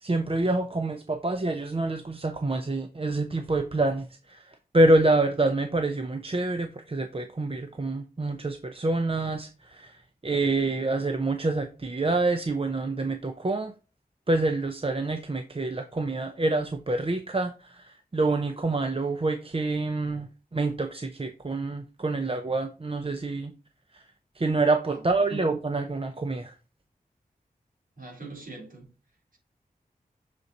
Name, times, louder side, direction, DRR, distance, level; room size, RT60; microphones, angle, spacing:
voice 1, 0.0-4.4 4.7-9.9 10.2-13.7 14.3-20.3 20.5-23.5 24.4-26.5, right 2 dB, 35° right, 0.7 m, -27 dB
voice 2, 28.0-28.9, right 2 dB, 60° right, 3.3 m, -41 dB
6.8 x 4.1 x 3.9 m
wide cardioid pair, 65°, 16 cm